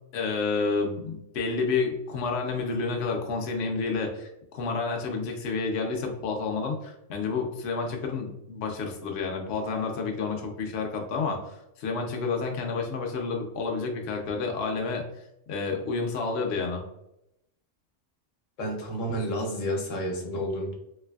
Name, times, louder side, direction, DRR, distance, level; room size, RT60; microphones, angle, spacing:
voice 1, 0.1-15.0 15.5-16.8, left 4 dB, 65° left, 1 dB, 0.8 m, -30 dB
voice 2, 18.6-20.7, equal, 85° left, 1 dB, 1.2 m, -30 dB
3.2 x 3.1 x 2.3 m, 0.83 s
omnidirectional pair, 1.3 m